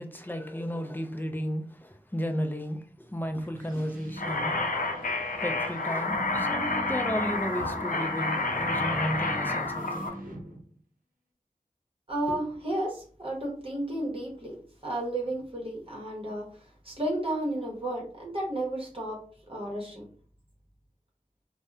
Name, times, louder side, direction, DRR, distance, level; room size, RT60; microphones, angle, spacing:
voice 1, 0.0-4.6 5.0-10.4, equal, 15° left, 0.4 m, -34 dB
sound 1, 3.0-10.8, equal, 80° right, 0.7 m, -41 dB
sound 2, 4.2-10.1, left 3 dB, 75° left, 0.5 m, -30 dB
voice 2, 12.1-14.6 14.8-16.5 16.8-19.2 19.5-20.0, right 1 dB, 40° right, 0.9 m, -32 dB
2.7 x 2.1 x 2.3 m
wide cardioid pair, 55°, 14 cm